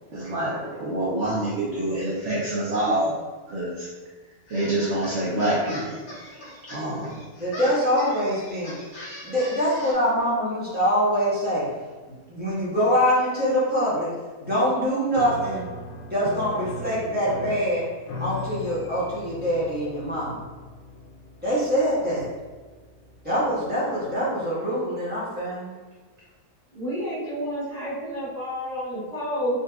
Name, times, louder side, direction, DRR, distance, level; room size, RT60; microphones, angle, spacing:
voice 1, 0.1-3.2 3.5-3.9 4.5-7.2, right 1 dB, 60° right, -7 dB, 0.9 m, -27 dB
sound 1, 4.5-9.9, left 1 dB, 45° left, 0.8 m, -39 dB
voice 2, 7.4-8.7 9.2-11.6 12.3-14.1 14.4-15.7 16.1-17.8 18.2-20.4 21.4-22.3 23.2-25.8, equal, 5° right, -10 dB, 1.0 m, -24 dB
Piano, 15.1-23.6, left 2 dB, 80° left, 1.1 m, -39 dB
voice 3, 26.7-29.5, equal, 30° left, -12 dB, 1.1 m, -30 dB
3.9 x 2.5 x 2.3 m, 1.3 s
omnidirectional pair, 1.6 m